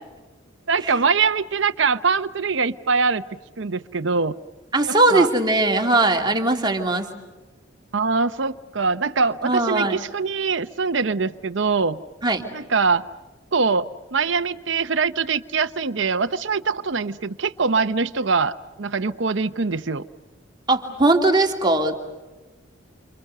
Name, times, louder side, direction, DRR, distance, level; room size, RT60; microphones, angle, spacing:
voice 1, 0.7-3.2 3.6-4.4 4.8-5.3 7.9-12.0 12.5-13.0 13.5-20.0, right 4 dB, 65° right, 9 dB, 0.8 m, -23 dB
voice 2, 4.7-7.1 9.4-10.0 12.2-12.5 20.7-22.0, right 2 dB, 25° right, 2 dB, 2.8 m, -19 dB
28.5 x 28.5 x 6.7 m, 1.1 s
head